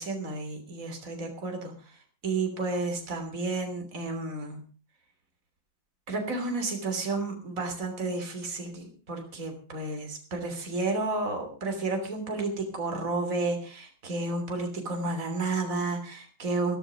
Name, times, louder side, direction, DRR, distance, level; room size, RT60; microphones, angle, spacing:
voice 1, 0.0-1.7 2.2-4.6 6.1-16.8, right 3 dB, 40° right, 4 dB, 3.5 m, -31 dB
15.0 x 13.5 x 5.0 m, 0.36 s
omnidirectional pair, 2.1 m